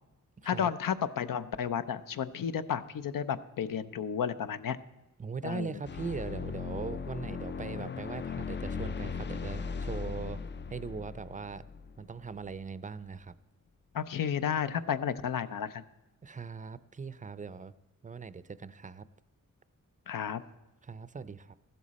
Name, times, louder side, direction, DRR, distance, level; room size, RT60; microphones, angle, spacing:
voice 1, 0.4-4.8 5.4-5.8 13.9-15.8 20.1-20.4, left 8 dB, 80° left, 12 dB, 0.7 m, -32 dB
voice 2, 5.2-10.4 10.7-11.6 12.0-13.3 16.2-17.7 18.0-19.1 20.8-21.5, right 5 dB, 25° right, 16 dB, 0.5 m, -40 dB
sound 1, 5.8-12.5, left 5 dB, 35° left, 0.4 m, -38 dB
15.0 x 12.5 x 4.2 m, 1.0 s
wide cardioid pair, 100°, 32 cm